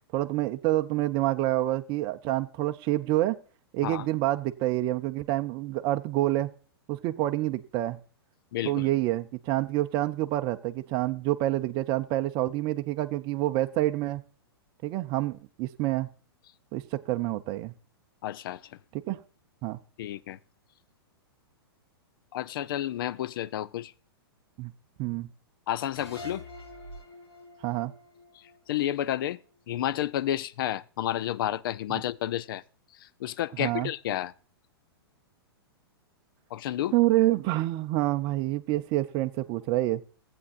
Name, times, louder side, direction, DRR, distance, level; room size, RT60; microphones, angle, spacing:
voice 1, 0.1-3.4 3.7-6.5 6.9-8.0 8.6-14.2 14.8-16.1 16.7-17.7 19.1-19.2 19.6-19.8 24.6-24.7 25.0-25.3 27.6-27.9 33.6-33.9 36.9-40.0, right 16 dB, 35° right, 0.6 m, -27 dB
voice 2, 8.5-8.9 18.2-18.8 20.0-20.4 22.3-23.9 25.7-26.4 28.3-29.4 29.7-32.6 33.0-34.3 36.5-36.9, left 12 dB, 60° left, 0.5 m, -31 dB
sound 1, 25.9-29.3, left 1 dB, 85° left, 2.9 m, -46 dB
15.0 x 8.5 x 2.5 m
hypercardioid pair, 120°, 13 cm